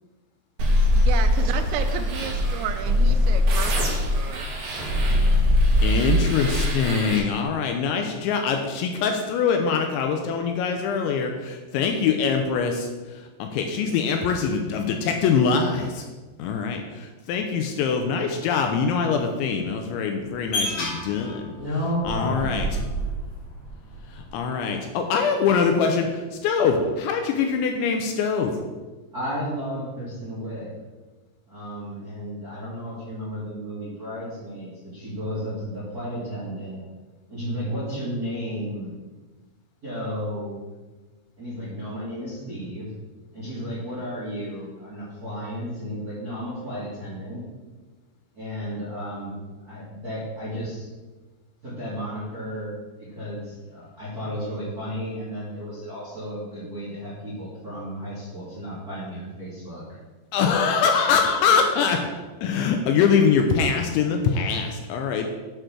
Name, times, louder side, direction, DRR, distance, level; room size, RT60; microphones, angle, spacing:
sound 1, 0.6-7.2, left 1 dB, 70° right, 2.2 m, -21 dB
voice 1, 0.9-4.5, right 8 dB, 85° right, 8 dB, 3.2 m, -33 dB
voice 2, 5.8-12.9 13.4-16.0 16.4-21.4 22.1-22.7 24.3-28.6 60.3-62.1 62.4-65.3, left 6 dB, 85° left, 4 dB, 2.7 m, -23 dB
sound 2, 20.2-24.4, right 1 dB, 50° left, 2.1 m, -31 dB
voice 3, 21.4-23.0 29.1-30.7 31.5-36.8 37.3-38.9 39.8-40.6 41.4-42.9 43.3-47.4 48.3-49.4 49.6-50.9 51.6-60.0, equal, 50° right, -10 dB, 1.0 m, -33 dB
9.0 x 3.8 x 6.1 m, 1.3 s
omnidirectional pair, 5.7 m